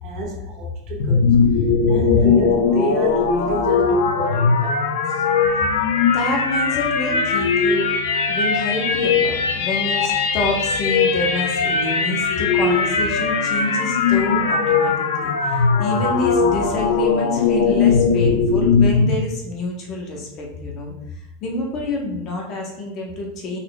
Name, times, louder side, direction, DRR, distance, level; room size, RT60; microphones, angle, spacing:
voice 1, 0.0-1.4 1.9-5.2 13.6-13.8, right 1 dB, 45° right, -2 dB, 1.3 m, -28 dB
sound 1, 1.0-19.1, left 5 dB, 80° left, 0.5 m, -19 dB
voice 2, 6.1-7.9 8.3-20.9 21.4-23.6, left 1 dB, 40° left, -1 dB, 0.9 m, -27 dB
4.0 x 3.7 x 2.2 m, 0.80 s
supercardioid pair, 135°, 0 cm